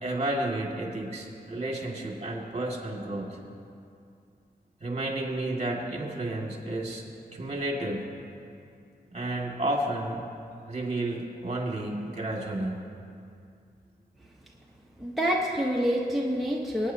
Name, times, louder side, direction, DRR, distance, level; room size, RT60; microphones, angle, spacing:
voice 1, 0.0-3.3 4.8-7.0 7.3-8.0 9.1-10.2 10.7-12.8, right 1 dB, 40° right, -1 dB, 2.0 m, -31 dB
voice 2, 15.0-16.9, equal, ahead, -3 dB, 0.9 m, -27 dB
25.0 x 9.1 x 2.8 m, 2.4 s
wide cardioid pair, 130°, 17 cm